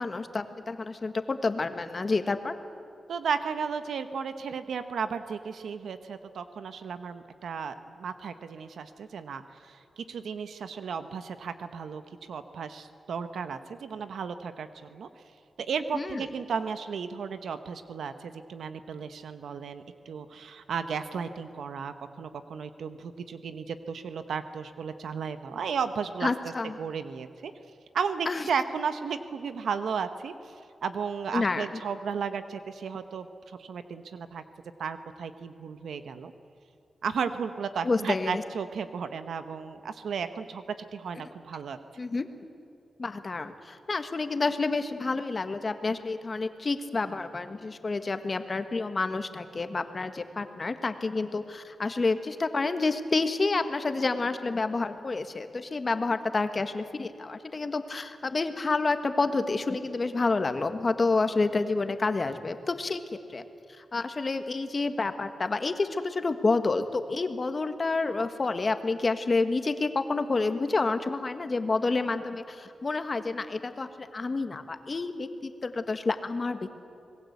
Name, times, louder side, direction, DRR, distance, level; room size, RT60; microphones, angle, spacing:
voice 1, 0.0-2.5 15.9-16.2 26.2-26.8 28.2-28.5 31.3-31.8 37.8-38.4 42.0-42.3 43.0-63.0 63.3-63.4 63.8-76.6, left 3 dB, 40° left, 8 dB, 1.7 m, -29 dB
voice 2, 3.1-12.0 12.3-15.1 15.6-26.3 26.8-27.5 27.9-30.5 30.8-34.4 34.8-36.3 37.0-41.8, right 6 dB, 90° right, 10 dB, 1.0 m, -34 dB
26.5 x 20.0 x 8.3 m, 2.6 s
cardioid pair, 85°, 0 cm